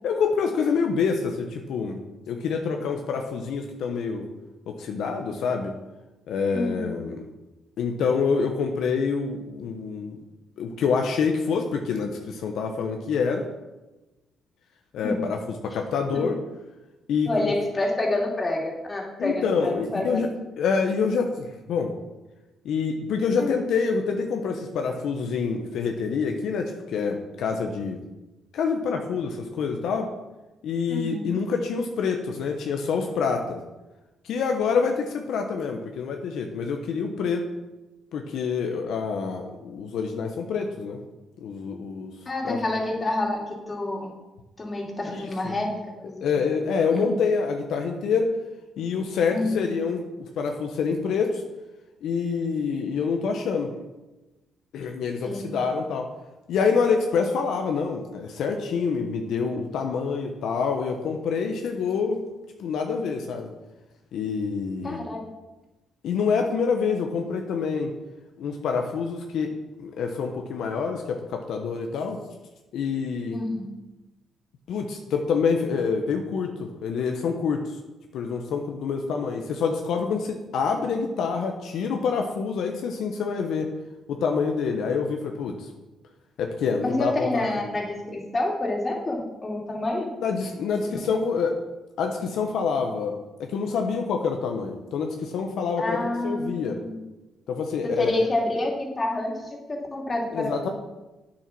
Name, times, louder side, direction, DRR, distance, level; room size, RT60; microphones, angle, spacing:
voice 1, 0.0-4.3 4.7-5.8 6.3-7.2 7.8-10.2 10.6-13.5 14.9-16.4 17.1-17.5 19.2-20.3 20.6-21.9 22.6-28.0 28.5-30.1 30.6-33.6 34.2-37.5 38.1-41.0 41.4-42.1 42.4-42.6 45.1-45.5 46.2-48.3 48.8-51.4 52.0-53.7 54.7-56.1 56.5-62.2 62.6-63.5 64.1-65.0 66.0-67.9 68.4-69.5 69.8-72.2 72.7-73.4 74.7-77.8 78.1-83.7 84.1-85.7 86.4-87.5 90.2-91.6 92.0-96.8 97.5-98.2 100.3-100.7, left 5 dB, 75° left, 4 dB, 1.0 m, -26 dB
voice 2, 6.5-6.9 15.0-15.2 16.1-16.2 17.3-20.3 23.4-23.6 30.9-31.3 42.3-44.1 44.6-45.7 46.0-46.2 46.9-47.1 49.3-49.7 55.3-55.4 64.8-65.2 73.3-73.7 86.8-90.1 90.8-90.9 95.8-97.0 97.8-100.7, left 2 dB, 30° left, 0 dB, 2.8 m, -28 dB
9.2 x 7.3 x 6.0 m, 1.1 s
cardioid pair, 90°, 0 cm